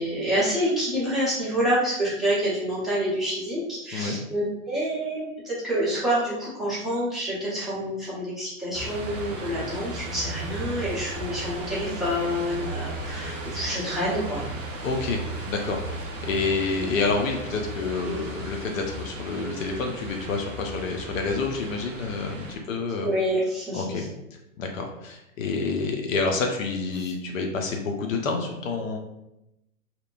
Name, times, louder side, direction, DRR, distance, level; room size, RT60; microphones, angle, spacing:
voice 1, 0.0-14.4 23.0-24.0, equal, ahead, -11 dB, 0.9 m, -27 dB
sound 1, 8.7-22.6, right 1 dB, 60° right, 1.0 m, -35 dB
voice 2, 14.8-15.2 15.5-23.1 23.7-24.0 24.6-29.0, left 4 dB, 65° left, 3 dB, 0.6 m, -28 dB
2.8 x 2.1 x 2.4 m, 0.87 s
hypercardioid pair, 125°, 42 cm